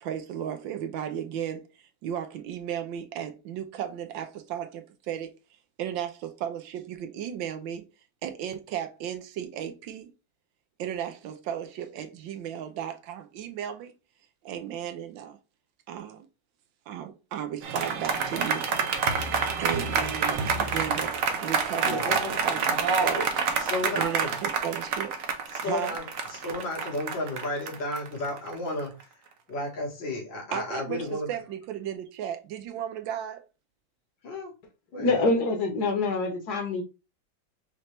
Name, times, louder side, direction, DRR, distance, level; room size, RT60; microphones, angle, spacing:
voice 1, 0.0-1.7 2.0-5.3 5.8-7.9 8.2-10.1 10.8-13.9 14.4-15.4 15.9-16.3 16.9-18.7 19.0-23.3 23.9-25.2 25.6-26.0 30.5-33.4, right 9 dB, 90° right, 1.5 m, -35 dB
sound 1, 17.6-29.0, right 5 dB, 60° right, 1.0 m, -28 dB
voice 2, 21.8-22.8 23.1-23.2 23.6-24.4 25.5-26.0 26.3-29.1 29.5-31.3 34.2-34.5 34.9-35.2, left 1 dB, 80° left, 2.4 m, -33 dB
voice 3, 35.0-36.8, left 3 dB, 60° left, 1.6 m, -25 dB
5.3 x 3.0 x 3.2 m
omnidirectional pair, 2.0 m